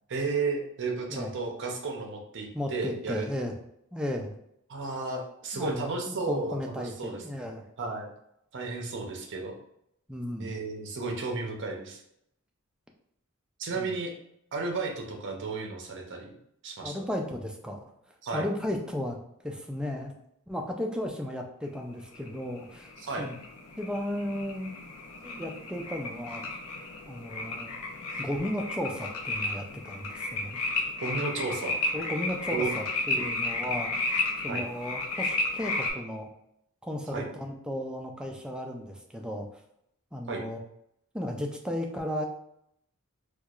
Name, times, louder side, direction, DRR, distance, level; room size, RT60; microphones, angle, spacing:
voice 1, 0.1-3.2 4.7-7.2 7.8-8.1 8.5-9.5 10.4-12.0 13.6-14.1 14.5-16.4 16.6-16.9 18.2-18.4 23.0-23.3 31.0-31.8 32.5-32.7 34.5-34.6 37.1-37.2 40.3-40.4, right 3 dB, 55° right, 1 dB, 0.6 m, -33 dB
voice 2, 2.5-3.5 3.9-4.3 5.5-7.6 10.1-10.5 13.7-13.9 16.8-17.8 18.3-19.2 19.4-20.1 20.5-22.9 23.2-23.3 23.8-24.8 25.2-26.5 27.1-27.7 28.2-30.6 31.9-33.9 34.4-36.3 36.8-39.6 40.1-40.6 41.1-42.2, left 1 dB, 5° right, 1 dB, 0.4 m, -34 dB
sound 1, 22.1-35.9, left 2 dB, 90° left, 0.6 m, -33 dB
4.4 x 2.3 x 2.4 m, 0.75 s
head